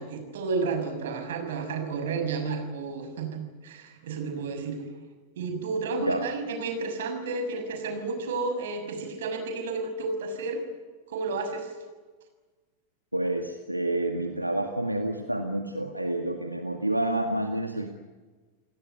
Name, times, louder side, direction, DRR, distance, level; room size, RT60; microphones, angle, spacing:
voice 1, 0.0-4.8 5.4-10.6 11.1-11.7, right 4 dB, 60° right, 6 dB, 6.6 m, -31 dB
voice 2, 13.1-17.9, right 1 dB, 90° right, 5 dB, 1.8 m, -29 dB
30.0 x 18.5 x 9.7 m, 1.3 s
figure-of-eight pair, 90°, 0 cm